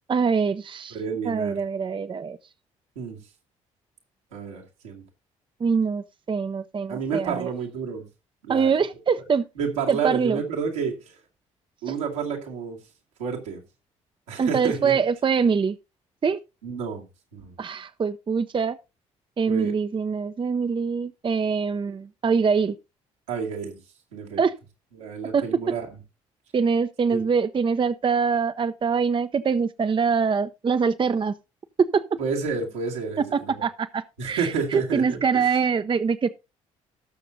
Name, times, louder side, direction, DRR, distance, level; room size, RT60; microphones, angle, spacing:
voice 1, 0.1-1.0 1.3-2.4 5.6-7.5 8.5-9.4 9.9-10.4 11.9-12.0 14.4-15.8 16.2-16.4 17.6-18.8 19.4-22.8 24.4-24.5 25.3-25.4 26.5-31.3 31.9-32.0 33.3-36.3, right 5 dB, 30° right, 0.6 m, -24 dB
voice 2, 0.9-1.6 3.0-3.2 4.3-5.0 6.9-8.1 8.4-8.7 9.6-11.2 11.8-12.8 13.2-13.6 14.3-15.0 16.6-17.1 17.3-17.6 19.5-19.8 23.3-23.8 24.1-24.4 24.9-26.0 27.1-27.2 32.2-33.5 34.2-35.6, right 6 dB, 80° right, 2.4 m, -30 dB
18.5 x 6.7 x 2.7 m
figure-of-eight pair, 45°, 16 cm